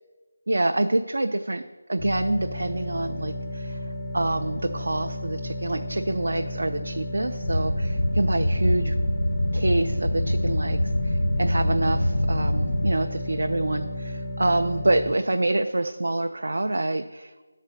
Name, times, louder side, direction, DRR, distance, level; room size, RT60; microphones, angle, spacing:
voice 1, 0.5-3.9 4.1-9.0 9.5-17.5, right 2 dB, 70° right, 6 dB, 0.4 m, -26 dB
sound 1, 2.0-15.1, left 1 dB, 5° left, 0.4 m, -33 dB
sound 2, 7.4-12.9, left 1 dB, 80° left, 1.0 m, -25 dB
11.0 x 4.1 x 6.6 m, 1.3 s
figure-of-eight pair, 180°, 0 cm